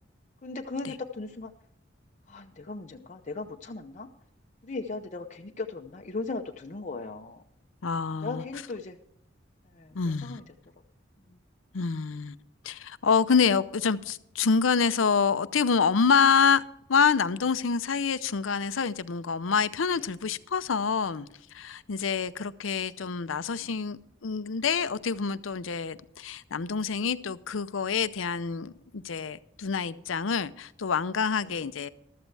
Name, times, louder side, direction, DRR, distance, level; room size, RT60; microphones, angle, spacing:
voice 1, 0.4-1.5 2.3-4.1 4.6-7.4 8.2-9.0 9.7-10.4 11.3-11.4 23.6-23.8 31.4-31.6, left 3 dB, 40° left, 0.7 m, -37 dB
voice 2, 7.8-8.4 9.9-10.4 11.7-12.4 12.6-16.6 16.9-31.9, left 6 dB, 90° left, 0.6 m, -27 dB
14.5 x 13.0 x 3.3 m
head